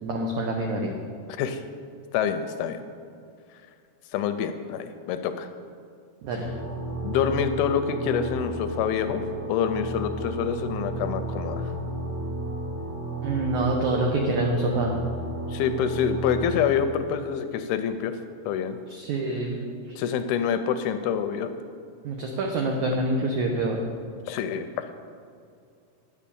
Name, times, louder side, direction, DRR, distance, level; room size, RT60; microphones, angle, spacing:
voice 1, 0.0-1.0 6.2-6.4 13.2-14.9 18.9-19.6 19.9-20.0 22.0-23.8, right 2 dB, 85° right, 1 dB, 1.6 m, -26 dB
voice 2, 2.1-2.8 4.1-5.5 7.0-9.2 9.5-11.7 15.5-18.1 18.5-18.8 20.0-21.5 24.3-24.9, left 8 dB, 80° left, 9 dB, 2.3 m, -26 dB
sound 1, 6.4-16.5, right 1 dB, 40° right, 1.6 m, -33 dB
9.8 x 7.4 x 6.9 m, 2.4 s
omnidirectional pair, 4.6 m